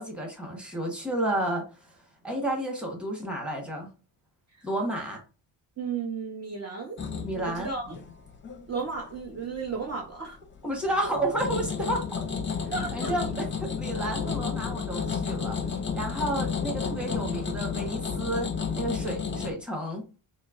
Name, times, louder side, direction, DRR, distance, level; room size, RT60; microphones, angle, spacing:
voice 1, 0.0-2.0 2.2-3.9 4.6-5.2 7.2-7.7 10.6-12.2 12.6-15.6 15.9-20.1, right 1 dB, ahead, 1.3 m, -31 dB
voice 2, 5.8-7.0 7.3-8.0 8.7-10.4 12.7-13.2, right 5 dB, 35° right, 0.8 m, -34 dB
sound 1, 7.0-9.2 9.5-10.1 10.5-19.5, left 6 dB, 25° left, 0.6 m, -32 dB
4.4 x 2.7 x 2.5 m
cardioid pair, 125°, 47 cm